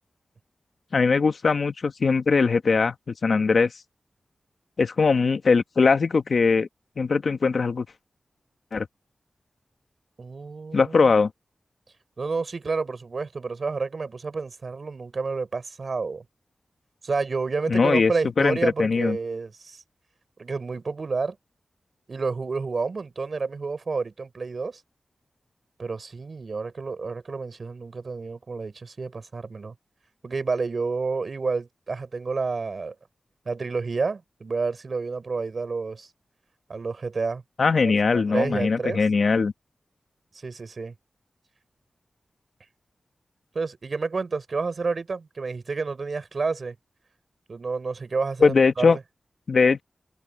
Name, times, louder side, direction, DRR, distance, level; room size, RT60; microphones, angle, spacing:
voice 1, 0.9-3.7 4.8-6.7 7.0-7.9 8.7-8.9 10.7-11.3 17.7-18.1 18.4-19.2 37.6-39.5 48.4-49.0 49.5-49.8, left 4 dB, 70° left, 1.5 m, -21 dB
voice 2, 10.2-11.1 12.2-16.2 17.0-19.8 20.4-21.4 22.1-24.8 25.8-29.7 30.2-32.9 33.4-36.1 36.7-37.4 37.8-39.0 40.3-40.9 43.5-46.7 47.5-49.0, right 4 dB, 60° right, 4.9 m, -30 dB
wide cardioid pair, 70°, 0 cm